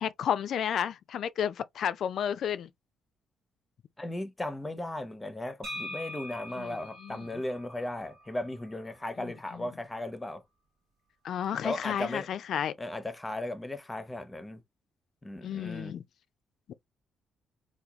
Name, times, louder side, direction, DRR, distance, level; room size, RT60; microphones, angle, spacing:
voice 1, 0.0-2.7 6.6-7.3 9.2-9.6 11.2-12.7 15.4-16.0, left 9 dB, 65° left, 0.3 m, -32 dB
voice 2, 4.0-10.4 11.6-12.3 12.8-14.6 15.2-15.9, left 1 dB, 15° left, 0.7 m, -36 dB
sound 1, 5.6-9.4, left 1 dB, 70° right, 1.5 m, -44 dB
3.5 x 2.2 x 2.8 m
cardioid pair, 90°, 0 cm